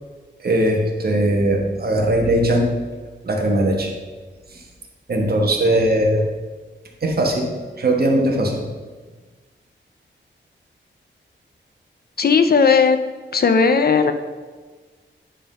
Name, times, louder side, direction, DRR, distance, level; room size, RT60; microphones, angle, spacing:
voice 1, 0.4-2.7 3.2-3.9 4.5-4.6 5.1-6.2 7.0-8.6, right 1 dB, 55° right, 1 dB, 1.3 m, -19 dB
voice 2, 12.2-13.0 13.3-14.1, left 5 dB, 55° left, 8 dB, 0.6 m, -15 dB
9.9 x 3.8 x 5.4 m, 1.4 s
wide cardioid pair, 155°, 20 cm